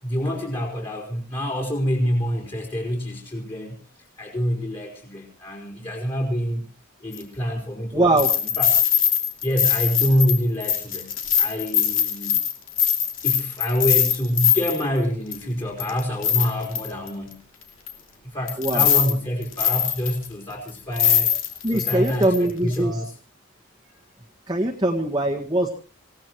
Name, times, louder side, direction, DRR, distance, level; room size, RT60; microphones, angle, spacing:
voice 1, 0.0-3.7 4.2-6.6 7.0-8.2 8.6-8.7 9.4-12.4 13.2-17.4 18.3-21.3 21.7-23.1, equal, 25° left, -1 dB, 4.5 m, -26 dB
sound 1, 7.1-7.2 8.2-14.8 15.3-15.4 15.8-17.1 17.9-18.0 18.5-19.1 19.4-20.3 20.7-20.8 21.0-22.4 22.7-22.8, left 9 dB, 65° left, 2.8 m, -21 dB
voice 2, 7.9-8.3 18.6-18.9 21.6-23.0 24.5-25.8, right 1 dB, 20° right, -1 dB, 1.7 m, -22 dB
26.5 x 17.5 x 3.0 m, 0.35 s
head